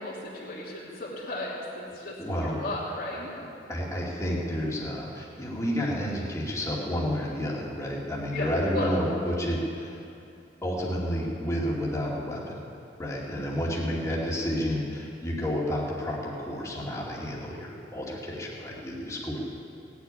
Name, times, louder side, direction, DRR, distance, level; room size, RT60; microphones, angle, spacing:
voice 1, 0.0-2.1 2.4-3.3 8.3-8.9 13.3-13.4, left 2 dB, 55° left, -7 dB, 3.0 m, -34 dB
voice 2, 2.2-2.6 3.7-10.0 10.6-12.4 13.0-19.4, equal, 15° left, -4 dB, 2.4 m, -30 dB
18.0 x 8.3 x 9.7 m, 2.6 s
head